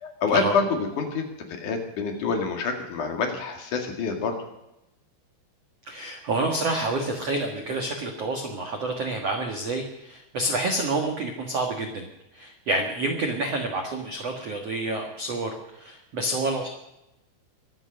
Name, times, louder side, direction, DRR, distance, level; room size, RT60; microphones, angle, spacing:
voice 1, 0.0-4.4, left 5 dB, 50° left, 4 dB, 3.1 m, -27 dB
voice 2, 5.8-12.1 12.3-16.7, right 2 dB, 60° right, 2 dB, 1.7 m, -28 dB
24.0 x 8.2 x 6.5 m, 0.90 s
omnidirectional pair, 5.3 m